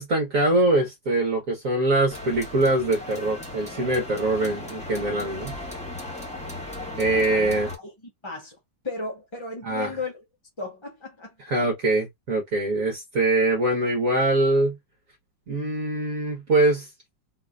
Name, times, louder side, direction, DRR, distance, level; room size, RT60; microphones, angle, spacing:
voice 1, 0.0-5.5 7.0-7.7 9.6-9.9 11.4-14.8 15.5-16.9, right 2 dB, 50° right, 1.5 m, -23 dB
sound 1, 2.1-7.8, left 2 dB, 5° left, 1.4 m, -36 dB
voice 2, 7.0-8.6 8.8-10.2 10.6-11.4, left 3 dB, 20° left, 0.8 m, -36 dB
4.1 x 2.8 x 2.4 m
omnidirectional pair, 2.0 m